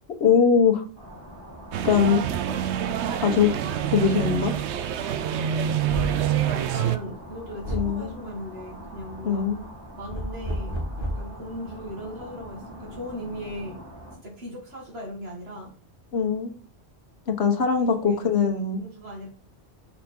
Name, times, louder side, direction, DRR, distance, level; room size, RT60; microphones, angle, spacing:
voice 1, 0.2-0.8 1.8-2.2 2.5-2.6 3.2-3.5 3.9-4.5 7.7-8.1 9.2-9.6 16.1-16.5 17.3-18.8, left 6 dB, 75° left, 5 dB, 1.3 m, -21 dB
sound 1, 1.0-14.2, equal, 20° right, 3.0 m, -43 dB
sound 2, 1.7-7.0, right 10 dB, 85° right, 0.9 m, -26 dB
voice 2, 2.5-3.2 6.3-9.5 10.0-13.8 14.2-15.7 17.8-18.2 18.8-19.3, equal, 65° right, -1 dB, 2.1 m, -38 dB
door pounding, 4.2-4.4 5.9-6.3 7.6-8.0 10.1-11.3, equal, 40° right, 3.1 m, -30 dB
5.4 x 4.3 x 4.4 m, 0.43 s
omnidirectional pair, 1.1 m